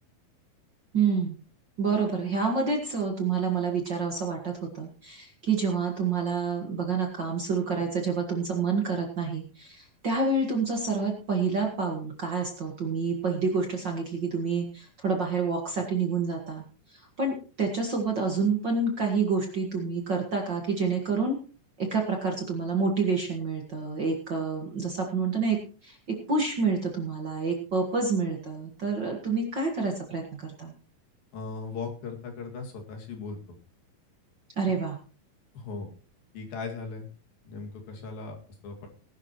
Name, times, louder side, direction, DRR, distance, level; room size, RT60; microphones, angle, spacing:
voice 1, 0.9-1.4 1.8-16.6 16.9-21.4 21.8-30.7 34.6-35.0, right 4 dB, 40° right, 2 dB, 1.7 m, -28 dB
voice 2, 31.3-33.4 35.5-35.9 36.3-37.1 37.5-38.4 38.6-38.9, left 4 dB, 80° left, 2 dB, 4.1 m, -38 dB
19.0 x 11.0 x 3.1 m, 0.37 s
omnidirectional pair, 4.1 m